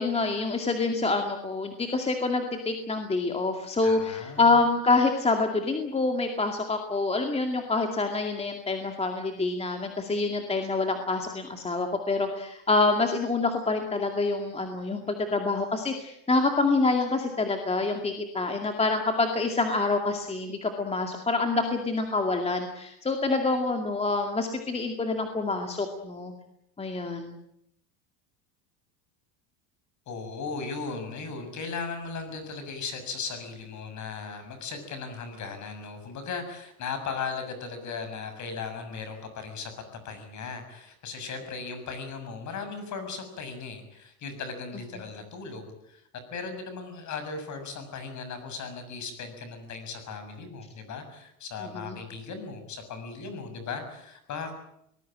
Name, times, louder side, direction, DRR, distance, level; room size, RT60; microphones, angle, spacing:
voice 1, 0.0-26.3 26.8-27.3 51.6-52.0, left 3 dB, 15° left, 4 dB, 2.2 m, -27 dB
voice 2, 3.8-4.5 30.1-46.0 46.3-54.5, left 5 dB, 35° left, 9 dB, 6.8 m, -37 dB
24.0 x 20.0 x 8.8 m, 0.77 s
cardioid pair, 150°, 48 cm